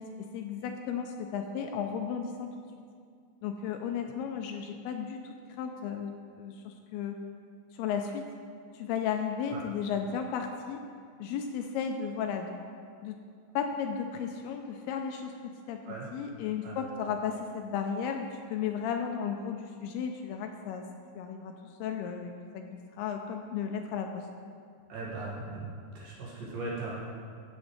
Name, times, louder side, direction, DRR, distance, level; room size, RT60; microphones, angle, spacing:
voice 1, 0.0-2.5 3.4-6.1 6.4-7.2 7.7-8.3 8.7-10.8 11.2-12.6 13.0-13.2 13.6-15.8 16.1-20.8 21.2-21.5 21.8-24.3, left 7 dB, 80° left, 4 dB, 2.4 m, -34 dB
voice 2, 24.9-25.7 26.0-26.9, right 3 dB, 65° right, -6 dB, 3.5 m, -38 dB
13.0 x 8.1 x 3.2 m, 2.2 s
omnidirectional pair, 4.8 m